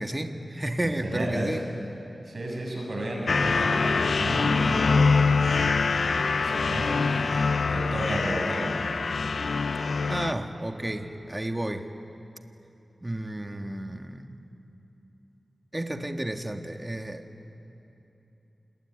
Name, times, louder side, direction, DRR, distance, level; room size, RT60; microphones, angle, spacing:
voice 1, 0.0-1.6 6.6-7.6 10.1-11.9 13.0-14.4 15.7-17.3, right 1 dB, 20° right, 5 dB, 1.6 m, -32 dB
voice 2, 0.8-1.6 2.3-4.9 6.3-7.1 7.7-8.8, right 1 dB, 55° right, -1 dB, 7.2 m, -32 dB
sound 1, 3.3-10.3, left 4 dB, 80° left, 0.6 m, -24 dB
27.5 x 20.5 x 9.6 m, 3.0 s
wide cardioid pair, 65°, 0 cm